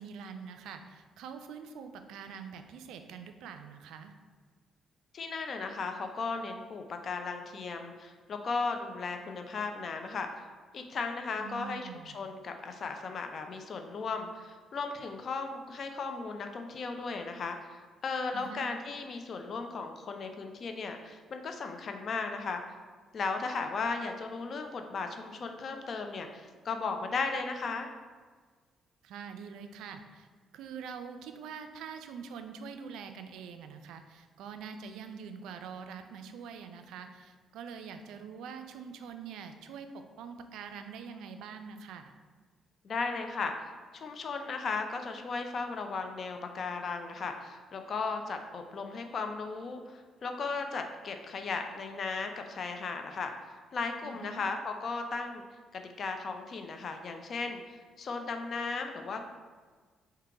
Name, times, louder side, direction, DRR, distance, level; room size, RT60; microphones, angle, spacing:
voice 1, 0.0-4.1 11.4-12.2 18.3-18.7 29.0-30.3 30.5-42.1 54.0-54.4, right 6 dB, 85° right, 7 dB, 0.3 m, -44 dB
voice 2, 5.1-10.5 10.7-22.6 23.1-27.9 42.8-55.4 55.7-59.2, left 4 dB, 55° left, 6 dB, 0.5 m, -36 dB
3.7 x 2.8 x 4.6 m, 1.5 s
cardioid pair, 90°, 0 cm